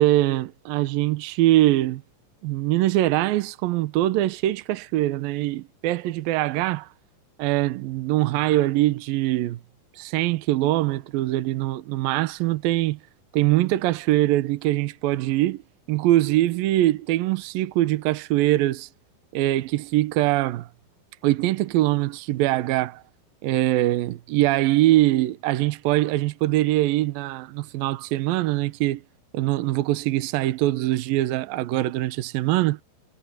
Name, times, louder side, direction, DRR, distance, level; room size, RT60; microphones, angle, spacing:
voice 1, 0.0-2.0 2.4-6.9 7.4-9.6 10.0-13.0 13.3-15.6 15.9-18.9 19.3-20.7 21.2-23.0 23.4-29.0 29.3-32.8, right 15 dB, 85° right, 2.0 m, -22 dB
omnidirectional pair, 5.5 m